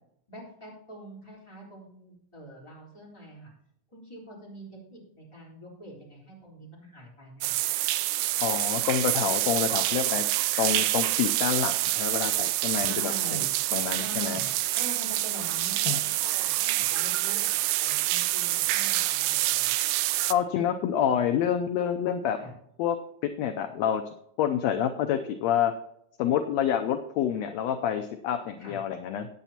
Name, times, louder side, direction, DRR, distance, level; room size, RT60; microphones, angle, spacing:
voice 1, 0.3-3.5 3.9-7.6 12.8-13.5 13.9-14.5 14.7-19.7 22.4-22.5 28.6-28.8, equal, 10° left, -5 dB, 3.4 m, -44 dB
sound 1, 7.4-20.3, right 16 dB, 80° right, 1.7 m, -27 dB
voice 2, 8.4-10.2 10.6-13.4 13.7-14.4 15.9-16.0 20.3-22.4 22.8-23.0 23.2-24.0 24.4-25.7 26.2-29.3, left 9 dB, 75° left, 7 dB, 1.6 m, -27 dB
15.0 x 9.1 x 2.9 m, 0.74 s
omnidirectional pair, 3.5 m